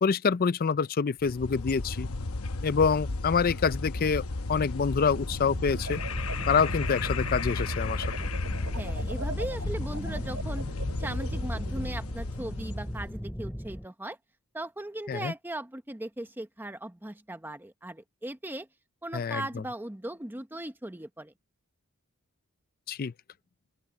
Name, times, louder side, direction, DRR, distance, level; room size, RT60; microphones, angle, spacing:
voice 1, 0.0-2.1 2.6-6.0 6.5-8.1 15.1-15.3 19.1-19.4 22.9-23.1, left 5 dB, 45° left, 0.4 m, -26 dB
sound 1, 1.2-13.1, left 2 dB, 75° left, 0.9 m, -34 dB
sound 2, 5.1-11.9, right 1 dB, 75° right, 3.5 m, -40 dB
sound 3, 5.9-13.9, equal, 5° left, 2.6 m, -39 dB
voice 2, 8.7-10.7 11.0-14.2 14.5-18.7 19.0-21.3, right 1 dB, 10° right, 0.9 m, -38 dB
open air
head